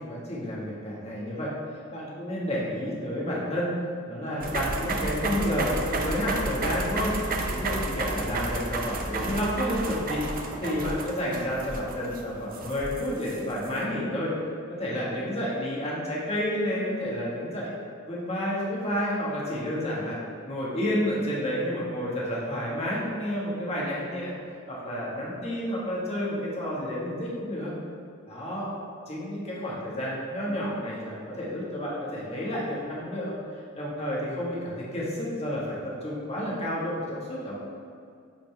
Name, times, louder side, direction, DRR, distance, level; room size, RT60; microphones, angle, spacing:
voice 1, 0.0-1.5 1.9-3.7 4.1-7.1 7.5-10.2 10.6-14.3 14.7-17.7 18.1-20.2 20.4-24.3 24.7-27.7 28.3-28.7 29.1-33.3 33.8-37.5, equal, 30° left, -6 dB, 1.6 m, -30 dB
sound 1, 4.4-13.7, right 2 dB, 45° right, 0.6 m, -31 dB
8.8 x 4.2 x 3.4 m, 2.3 s
head